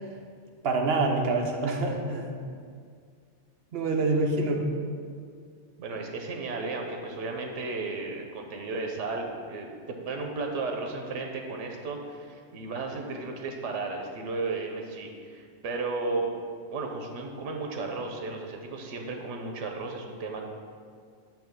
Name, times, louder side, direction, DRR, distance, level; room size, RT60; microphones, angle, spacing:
voice 1, 0.6-2.4 3.7-4.6, right 3 dB, 60° right, 1 dB, 0.9 m, -26 dB
voice 2, 5.8-16.3 16.7-20.4, right 3 dB, 90° right, 3 dB, 1.0 m, -34 dB
6.9 x 3.0 x 5.8 m, 2.1 s
omnidirectional pair, 1.2 m